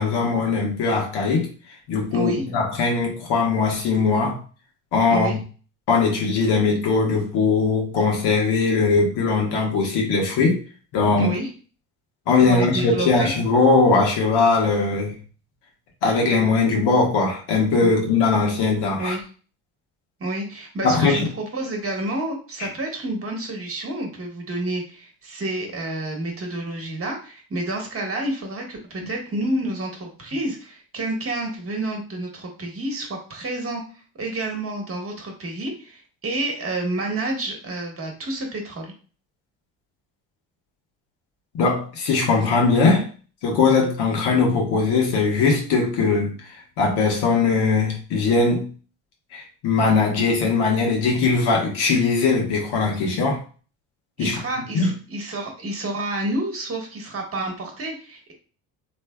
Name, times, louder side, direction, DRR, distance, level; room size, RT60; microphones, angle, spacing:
voice 1, 0.0-1.5 1.9-4.4 4.9-5.4 5.9-10.6 10.9-11.3 12.3-15.1 16.0-19.2 20.8-21.3 22.6-22.7 29.0-29.1 41.5-43.1 43.4-48.7 49.3-53.4 54.2-54.4 54.7-54.9, left 4 dB, 65° left, 0 dB, 1.3 m, -20 dB
voice 2, 2.1-2.4 5.1-5.4 11.2-11.5 12.4-13.3 17.8-17.9 19.0-19.2 20.2-33.8 34.2-38.9 54.2-58.3, right 1 dB, 30° right, 2 dB, 1.3 m, -29 dB
3.2 x 3.1 x 2.2 m, 0.38 s
hypercardioid pair, 60°, 43 cm